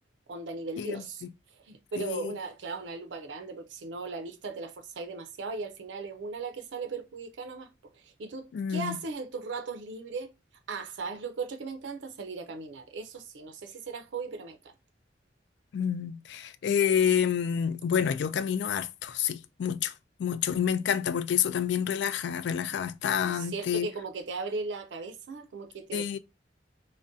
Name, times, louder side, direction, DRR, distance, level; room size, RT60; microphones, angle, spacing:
voice 1, 0.3-1.2 1.6-7.7 7.9-10.3 10.7-14.7 23.2-26.2, right 4 dB, 80° right, 0.5 m, -37 dB
voice 2, 2.0-2.3 8.5-9.0 15.7-19.9 20.2-23.9 25.9-26.2, left 8 dB, 65° left, 0.3 m, -28 dB
3.6 x 2.1 x 2.6 m
head